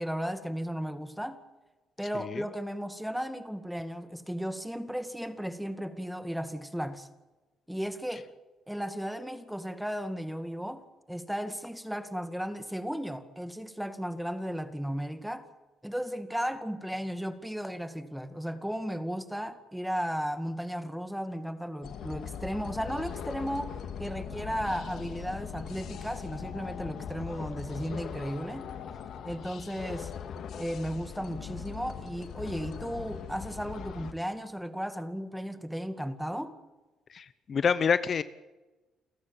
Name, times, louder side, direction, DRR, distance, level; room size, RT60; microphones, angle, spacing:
voice 1, 0.0-1.4 2.0-7.1 7.7-8.3 8.7-10.8 11.1-15.5 15.8-28.7 29.2-30.1 30.6-36.5, equal, ahead, 2.3 m, -35 dB
sound 1, 21.8-34.1, left 7 dB, 70° left, 2.1 m, -40 dB
voice 2, 37.1-38.2, left 6 dB, 50° left, 0.9 m, -27 dB
29.5 x 14.0 x 9.2 m
cardioid pair, 90°, 0 cm